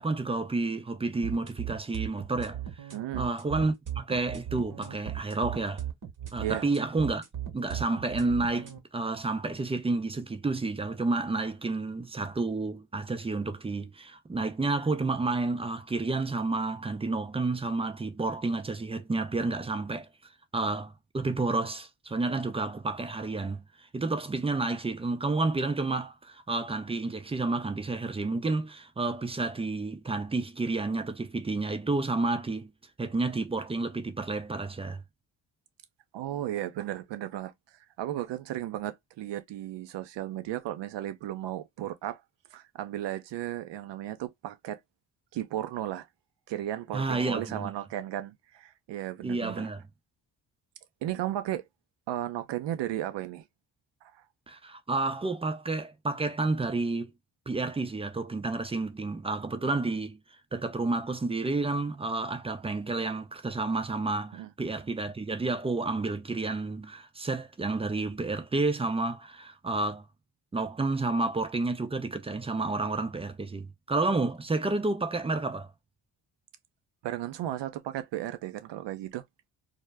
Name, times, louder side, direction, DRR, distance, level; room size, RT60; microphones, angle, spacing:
voice 1, 0.0-2.9 3.2-5.8 6.3-7.2 7.5-20.1 20.5-23.6 23.9-32.7 33.0-35.0 46.9-47.7 49.2-49.8 54.5-57.1 57.5-60.2 60.5-70.0 70.5-75.7, right 3 dB, 15° right, 0.4 m, -30 dB
sound 1, 1.2-8.8, right 11 dB, 40° right, 0.9 m, -37 dB
voice 2, 2.9-3.3 6.4-6.6 36.1-37.5 38.0-42.2 42.5-44.8 45.3-46.1 46.5-49.7 51.0-51.6 52.1-53.4 54.0-54.1 64.3-64.5 77.0-79.2, right 12 dB, 60° right, 0.6 m, -35 dB
2.1 x 2.0 x 3.3 m
supercardioid pair, 45°, 49 cm